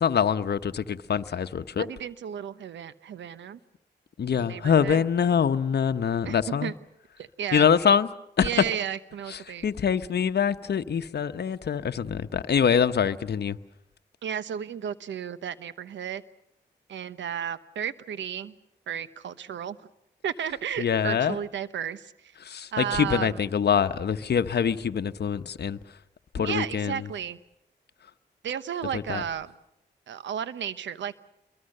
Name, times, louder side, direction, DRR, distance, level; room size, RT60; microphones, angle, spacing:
voice 1, 0.0-1.8 4.2-6.7 7.5-8.1 8.4-8.5 9.3-13.6 20.8-21.4 22.4-25.8 26.3-27.0 28.9-29.2, left 7 dB, 65° left, 1.0 m, -24 dB
voice 2, 1.8-3.6 4.3-5.0 6.2-6.7 7.2-7.7 8.4-9.7 14.2-16.2 16.9-18.5 18.9-19.9 20.2-22.3 22.7-23.4 26.4-27.4 28.4-29.6 30.1-31.1, right 8 dB, 85° right, 1.0 m, -33 dB
28.0 x 22.5 x 6.7 m
supercardioid pair, 40°, 19 cm